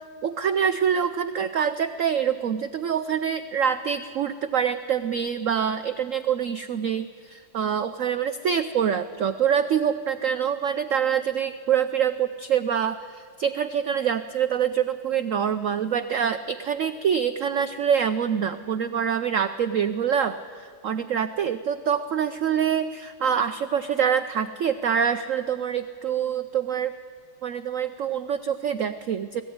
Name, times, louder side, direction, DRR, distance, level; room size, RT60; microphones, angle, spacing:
voice 1, 0.2-26.9 27.4-29.4, right 8 dB, 90° right, 10 dB, 0.7 m, -25 dB
20.5 x 15.0 x 9.4 m, 2.2 s
omnidirectional pair, 2.1 m